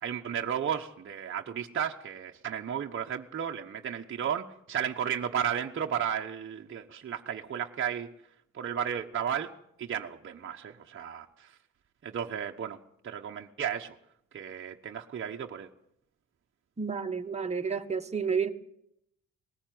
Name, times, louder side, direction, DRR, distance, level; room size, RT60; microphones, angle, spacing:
voice 1, 0.0-8.1 8.6-9.5 9.8-11.3 12.0-12.8 13.0-13.9 14.3-15.7, right 8 dB, 40° right, 2 dB, 1.1 m, -33 dB
voice 2, 16.8-18.5, right 6 dB, 20° right, 4 dB, 1.5 m, -30 dB
20.0 x 14.5 x 9.3 m, 0.76 s
cardioid pair, 90°, 30 cm